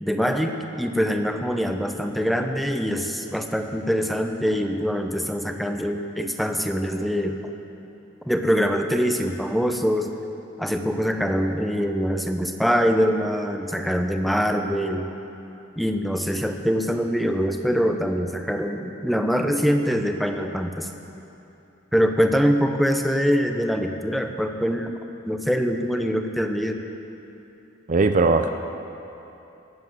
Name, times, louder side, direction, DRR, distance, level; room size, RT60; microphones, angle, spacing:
voice 1, 0.0-7.4 8.2-10.1 10.6-15.1 15.8-20.9 21.9-25.0 25.2-26.8, equal, ahead, 5 dB, 0.7 m, -24 dB
voice 2, 27.9-28.5, right 3 dB, 40° right, 7 dB, 0.5 m, -19 dB
19.0 x 7.6 x 7.6 m, 2.9 s
head